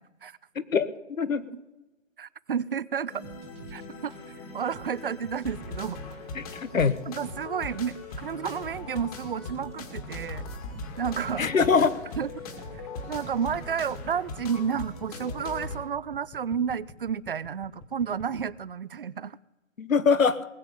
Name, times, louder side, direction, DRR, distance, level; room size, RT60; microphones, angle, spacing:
voice 1, 0.5-0.9 1.2-1.5 6.3-7.0 11.4-11.9 19.8-20.5, left 5 dB, 80° left, 14 dB, 1.2 m, -23 dB
voice 2, 2.2-3.1 3.7-4.1 4.5-6.0 7.1-10.4 11.0-11.5 12.2-12.4 13.1-19.4, right 7 dB, 45° right, 21 dB, 0.4 m, -31 dB
sound 1, 3.1-15.8, left 3 dB, 30° left, 2.1 m, -40 dB
sound 2, 3.2-15.2, right 6 dB, 20° right, 1.3 m, -49 dB
sound 3, 10.0-18.5, left 2 dB, 10° left, 1.2 m, -47 dB
19.5 x 7.9 x 6.8 m, 1.0 s
figure-of-eight pair, 145°, 39 cm